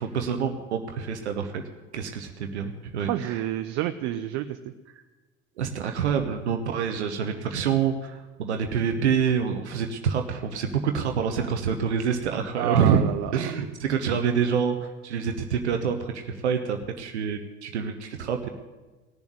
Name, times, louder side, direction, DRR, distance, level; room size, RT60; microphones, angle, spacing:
voice 1, 0.0-1.6 1.9-3.4 5.6-13.0 13.3-18.5, right 7 dB, 75° right, 5 dB, 1.0 m, -27 dB
voice 2, 3.0-4.6 12.5-13.3, right 13 dB, 55° right, 10 dB, 0.7 m, -29 dB
17.5 x 7.1 x 9.3 m, 1.2 s
figure-of-eight pair, 65°, 34 cm